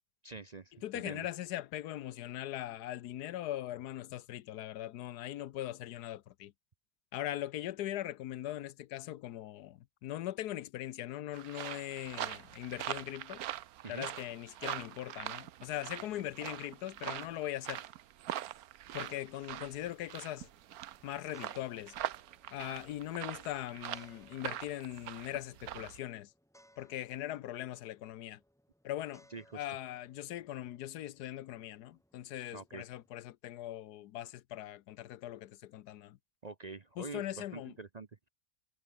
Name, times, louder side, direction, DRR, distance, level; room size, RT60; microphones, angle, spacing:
voice 1, 0.2-1.3 13.8-14.1 29.3-29.8 32.5-32.8 36.4-38.3, right 4 dB, 35° right, 0.7 m, -46 dB
voice 2, 0.8-6.5 7.1-13.4 13.9-17.8 18.9-20.5 21.0-21.9 22.5-26.3 26.8-28.4 28.8-29.2 29.5-36.2 37.0-37.7, left 13 dB, 80° left, 1.3 m, -40 dB
sound 1, 11.3-26.0, right 12 dB, 70° right, 1.2 m, -43 dB
sound 2, 19.9-33.1, equal, ahead, 3.9 m, -68 dB
omnidirectional pair, 1.7 m